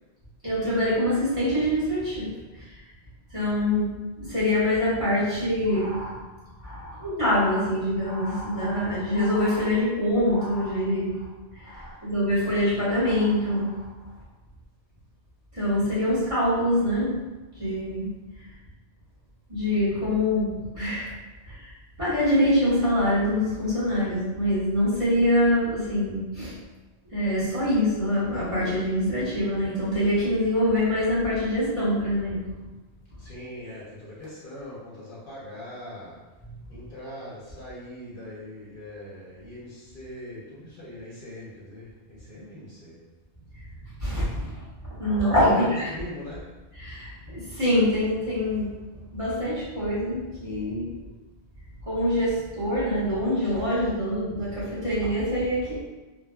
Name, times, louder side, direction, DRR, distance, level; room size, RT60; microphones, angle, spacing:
voice 1, 0.4-2.8 3.3-3.9 4.2-6.2 6.6-11.3 11.5-13.8 15.5-17.2 17.5-18.1 19.5-21.1 21.4-26.5 27.1-32.4 44.0-45.9 46.8-48.7 49.1-51.1 51.8-55.8, left 1 dB, 30° right, -12 dB, 1.1 m, -25 dB
voice 2, 6.1-6.4 6.8-7.0 11.8-11.9 33.2-36.2 36.7-43.0 45.9-46.5, left 1 dB, 55° left, -7 dB, 0.9 m, -41 dB
3.3 x 2.0 x 2.2 m, 1.1 s
omnidirectional pair, 1.1 m